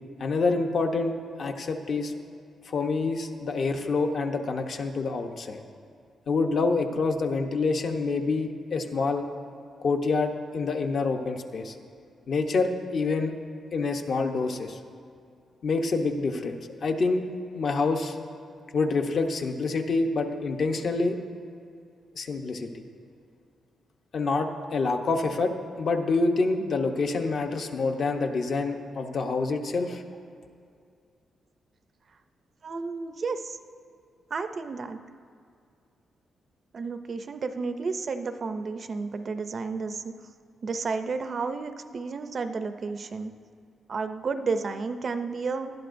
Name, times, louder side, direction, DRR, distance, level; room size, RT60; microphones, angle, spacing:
voice 1, 0.2-1.1 1.4-2.1 2.7-5.6 6.3-9.2 9.8-11.7 12.3-13.3 13.7-14.8 15.6-17.2 17.5-18.2 18.7-21.2 22.1-22.8 24.1-25.5 25.8-30.0, left 3 dB, 45° left, 4 dB, 0.8 m, -27 dB
voice 2, 32.6-33.6 34.3-35.0 36.7-40.1 40.6-43.3 43.9-45.7, right 4 dB, 40° right, 9 dB, 0.5 m, -32 dB
19.5 x 12.0 x 2.6 m, 2.3 s
wide cardioid pair, 155°, 0 cm